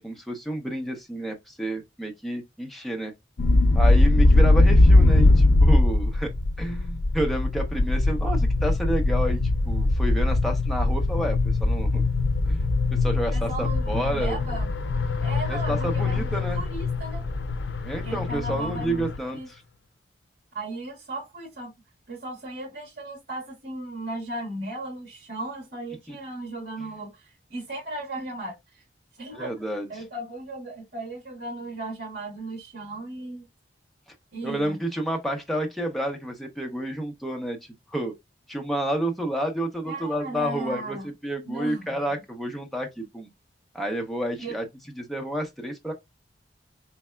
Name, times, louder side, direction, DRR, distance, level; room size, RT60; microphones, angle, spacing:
voice 1, 0.0-3.1 3.7-6.3 6.6-9.4 9.7-12.1 12.5-14.3 15.5-16.6 17.8-19.6 26.1-26.2 29.3-29.9 34.4-37.6 37.9-38.1 38.5-43.3 43.7-44.6 45.0-45.9, right 1 dB, ahead, 0.7 m, -30 dB
sound 1, 3.4-19.2, left 2 dB, 80° left, 0.5 m, -21 dB
voice 2, 13.3-14.7 15.2-17.3 17.9-19.5 20.5-21.7 22.1-28.8 29.1-29.5 29.9-33.5 34.3-34.8 39.8-41.1 41.4-42.2 44.4-44.5, right 2 dB, 60° right, 1.5 m, -36 dB
4.1 x 3.3 x 2.2 m
head